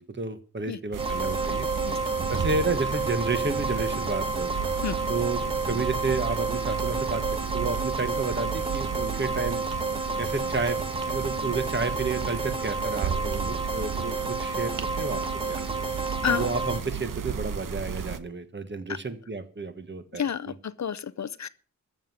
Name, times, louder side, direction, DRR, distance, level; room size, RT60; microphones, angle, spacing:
voice 1, 0.0-1.7 2.3-4.5 5.1-9.6 10.2-10.8 11.1-15.2 15.5-15.6 16.2-20.5, right 3 dB, 35° right, 1.4 m, -31 dB
sound 1, 0.9-18.2, right 7 dB, 75° right, 1.1 m, -34 dB
sound 2, 1.0-16.8, right 3 dB, 15° right, 1.2 m, -31 dB
voice 2, 20.1-21.5, left 8 dB, 55° left, 0.6 m, -29 dB
14.0 x 7.3 x 7.8 m
wide cardioid pair, 145°, 33 cm